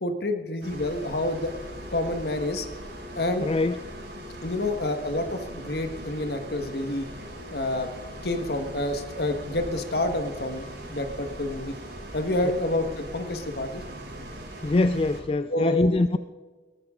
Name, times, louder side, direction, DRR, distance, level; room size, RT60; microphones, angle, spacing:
voice 1, 0.0-1.5 1.9-2.7 3.1-3.5 4.4-7.1 7.5-7.9 8.2-11.7 12.1-13.8 15.5-15.9, left 1 dB, 65° left, 7 dB, 1.5 m, -28 dB
sound 1, 0.6-15.2, right 1 dB, 90° right, 5.7 m, -40 dB
voice 2, 3.4-3.8 12.4-12.5 14.6-16.2, left 2 dB, 30° left, 11 dB, 0.3 m, -23 dB
17.5 x 14.0 x 3.8 m, 1.4 s
head